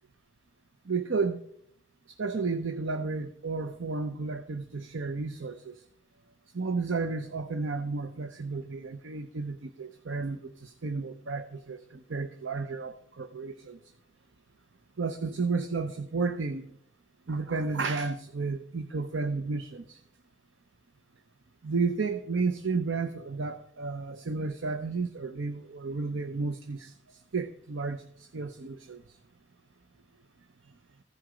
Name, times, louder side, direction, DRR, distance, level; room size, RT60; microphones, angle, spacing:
voice 1, 0.9-1.4 2.2-5.8 6.5-13.8 15.0-16.7 17.3-20.0 21.6-29.0, right 4 dB, 75° right, 9 dB, 0.7 m, -32 dB
15.5 x 10.5 x 5.1 m, 0.71 s
head